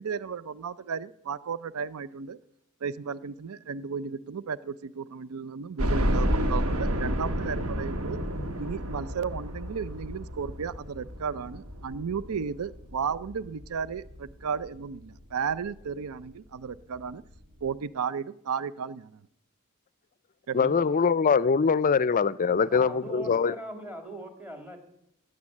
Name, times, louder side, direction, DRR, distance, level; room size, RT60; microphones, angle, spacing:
voice 1, 0.0-2.4 2.8-8.2 8.6-17.2 17.6-19.1 20.5-20.7 22.5-22.6, right 6 dB, 90° right, 0.5 m, -34 dB
sound 1, 5.8-14.7 15.2-15.3 15.6-15.7 16.9-17.0 17.3-17.4, equal, 75° right, 1.5 m, -30 dB
voice 2, 20.5-23.5, left 5 dB, 40° left, 0.4 m, -23 dB
voice 3, 22.6-24.8, right 1 dB, 10° right, 2.5 m, -41 dB
16.0 x 9.4 x 7.2 m
head